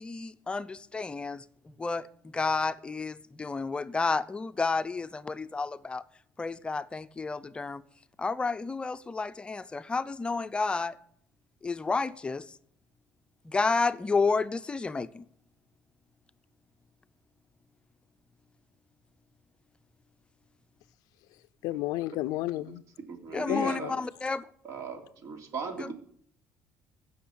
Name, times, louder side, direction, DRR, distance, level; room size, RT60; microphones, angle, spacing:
voice 1, 0.0-1.4 1.8-2.0 2.3-6.0 6.4-7.8 8.2-10.9 11.6-12.4 13.5-15.2 23.3-24.4 25.8-25.9, left 4 dB, 15° left, 0.6 m, -30 dB
voice 2, 21.3-22.8 23.5-24.0, left 17 dB, 80° left, 0.5 m, -33 dB
voice 3, 23.1-23.9 24.6-25.9, right 5 dB, 55° right, 3.3 m, -37 dB
16.0 x 6.4 x 9.4 m
cardioid pair, 140°, 6 cm